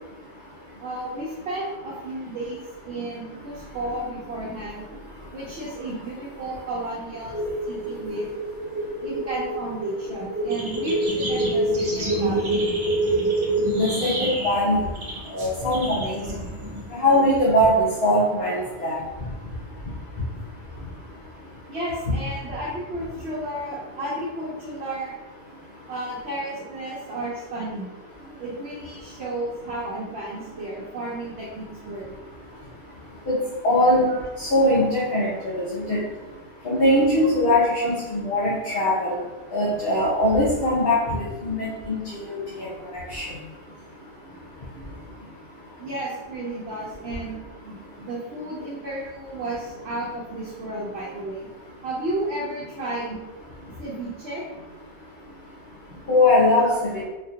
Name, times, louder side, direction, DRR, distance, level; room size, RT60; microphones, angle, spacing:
voice 1, 0.8-2.6 2.8-4.9 5.3-7.4 7.7-8.3 9.0-12.6 18.4-18.5 21.7-25.2 25.9-27.9 28.4-32.1 34.1-34.2 37.7-37.9 38.7-38.8 45.8-51.5 51.8-53.2 53.8-54.4 56.5-56.8, right 1 dB, 70° right, -7 dB, 1.0 m, -32 dB
sound 1, 7.1-13.9, right 2 dB, 45° left, 0.6 m, -26 dB
sound 2, 10.5-17.4, equal, 35° right, 0.6 m, -32 dB
voice 2, 13.7-14.8 15.3-16.2 16.9-19.0 33.3-33.4 33.6-34.1 34.4-35.3 35.5-36.0 36.6-39.1 39.5-41.0 41.4-42.7 43.1-43.2 56.1-57.1, left 1 dB, 65° left, -7 dB, 1.0 m, -21 dB
4.2 x 2.4 x 2.7 m, 1.2 s
omnidirectional pair, 1.1 m